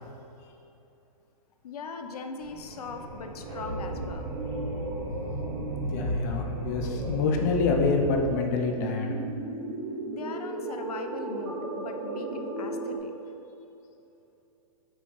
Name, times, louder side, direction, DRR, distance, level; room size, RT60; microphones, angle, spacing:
voice 1, 1.6-4.3 10.1-13.1, left 4 dB, 80° left, 6 dB, 0.7 m, -40 dB
sound 1, 2.4-8.1, right 1 dB, 30° right, 1.4 m, -34 dB
voice 2, 5.8-9.1, left 4 dB, 30° left, 2 dB, 0.5 m, -27 dB
sound 2, 8.6-13.0, right 2 dB, 55° right, 1.2 m, -35 dB
7.6 x 4.9 x 3.9 m, 2.9 s
hypercardioid pair, 165°, 19 cm